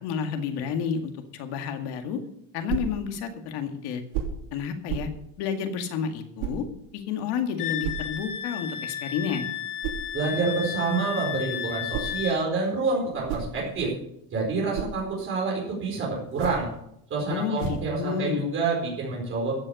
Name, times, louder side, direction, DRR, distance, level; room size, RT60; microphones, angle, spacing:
voice 1, 0.0-2.2 2.5-4.0 4.5-5.1 5.4-6.7 6.9-9.5 17.3-18.4, left 7 dB, 55° left, 6 dB, 2.1 m, -30 dB
sound 1, 2.7-3.0 4.1-4.4 4.9-5.2 6.4-6.6 7.8-8.1 9.8-10.1 11.6-12.2 13.0-14.0 14.4-15.0 16.2-16.7 17.6-17.9, right 8 dB, 75° right, 3.4 m, -33 dB
Wind instrument woodwind instrument, 7.6-12.4, left 10 dB, 75° left, 2.9 m, -33 dB
voice 2, 10.1-13.9 14.3-16.7 17.1-19.5, right 3 dB, 25° right, -3 dB, 4.6 m, -27 dB
14.5 x 7.8 x 6.7 m, 0.73 s
cardioid pair, 175°, 45 cm